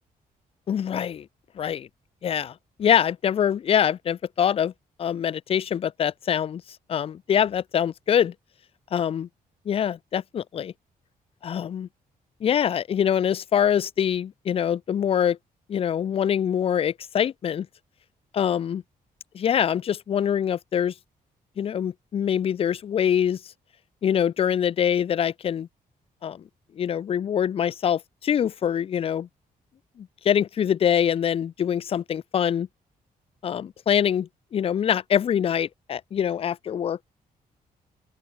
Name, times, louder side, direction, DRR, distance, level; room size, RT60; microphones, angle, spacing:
voice 1, 0.7-1.3 1.6-1.9 2.2-4.7 5.0-6.6 6.9-8.3 8.9-9.3 9.7-10.7 11.4-11.9 12.4-15.4 15.7-17.7 18.3-18.8 19.3-20.9 21.6-23.4 24.0-25.7 26.2-26.4 26.8-29.3 30.0-32.7 33.4-37.1, left 9 dB, 40° left, 0.7 m, -24 dB
open air
wide cardioid pair, 180°, 15 cm